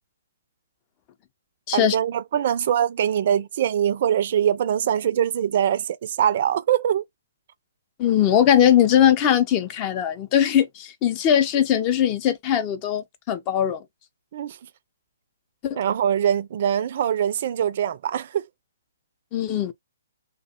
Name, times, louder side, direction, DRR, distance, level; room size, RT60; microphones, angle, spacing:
voice 1, 1.7-7.0 14.3-14.6 15.8-18.5, right 9 dB, 50° right, 0.4 m, -23 dB
voice 2, 8.0-13.8 15.6-15.8 19.3-19.7, left 10 dB, 30° left, 0.5 m, -20 dB
2.4 x 2.1 x 2.8 m
hypercardioid pair, 135°, 0 cm